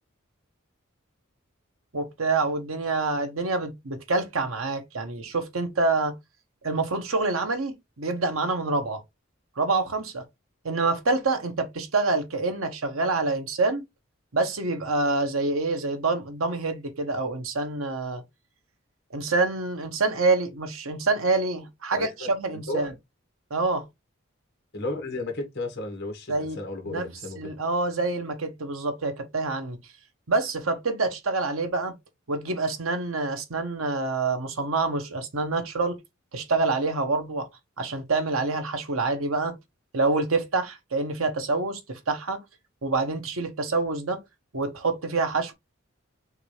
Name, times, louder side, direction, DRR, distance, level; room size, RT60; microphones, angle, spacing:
voice 1, 1.9-6.2 6.6-9.0 9.6-10.2 10.6-13.8 14.3-18.2 19.1-22.9 23.5-23.8 26.3-26.6 26.9-27.0 27.4-29.8 30.3-31.9 32.3-36.0 36.3-37.5 37.8-39.6 39.9-42.4 42.8-44.2 44.5-45.5, right 3 dB, 85° right, 1.1 m, -26 dB
voice 2, 21.9-22.9 24.7-27.5, left 2 dB, 50° left, 1.6 m, -34 dB
5.8 x 2.6 x 3.2 m
head